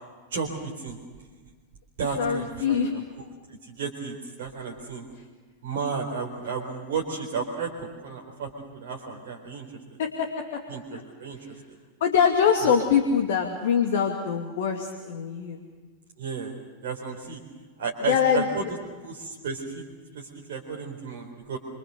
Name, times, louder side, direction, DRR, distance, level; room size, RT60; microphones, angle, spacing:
voice 1, 0.3-1.0 2.0-3.0 3.5-5.1 5.6-9.7 10.7-11.8 12.6-12.7 16.2-16.5 16.8-17.4 17.8-18.6 19.0-21.6, right 5 dB, 55° right, -2 dB, 4.2 m, -33 dB
voice 2, 2.0-2.9 10.0-10.6 10.9-11.0 12.0-15.6 18.0-18.5, left 7 dB, 55° left, 4 dB, 2.4 m, -24 dB
27.5 x 26.5 x 6.8 m, 1.4 s
figure-of-eight pair, 90°, 0 cm